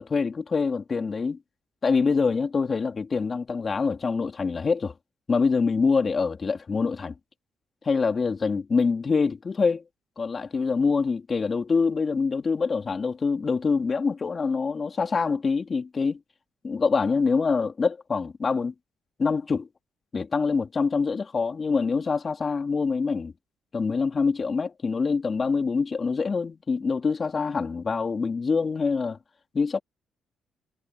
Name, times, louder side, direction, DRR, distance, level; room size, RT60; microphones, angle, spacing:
voice 1, 0.0-1.4 1.8-4.9 5.3-7.1 7.8-9.8 10.2-16.2 16.6-18.7 19.2-19.7 20.1-23.3 23.7-29.2 29.5-29.8, left 4 dB, 35° left, 3.1 m, -25 dB
cardioid pair, 90°, 0 cm